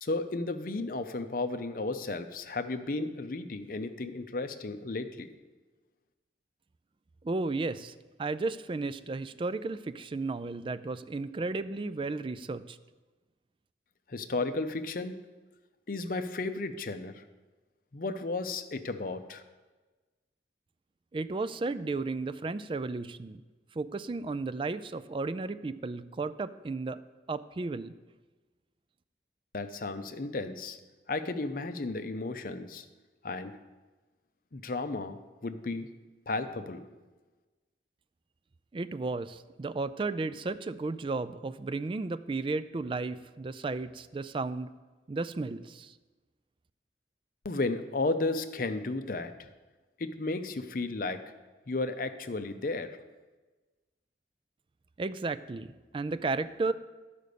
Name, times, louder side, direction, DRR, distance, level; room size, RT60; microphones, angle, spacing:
voice 1, 0.0-5.3 14.1-15.2 15.9-17.2 17.9-19.4 29.5-30.8 31.1-32.8 33.2-33.6 34.5-35.9 36.3-36.8 47.4-49.3 50.0-51.2 51.7-53.0, left 3 dB, 50° left, 9 dB, 0.6 m, -33 dB
voice 2, 7.2-12.8 21.1-23.4 23.7-27.0 27.3-27.9 38.7-44.7 45.1-46.0 55.0-56.7, right 3 dB, 30° right, 14 dB, 0.3 m, -34 dB
11.0 x 5.1 x 6.7 m, 1.3 s
head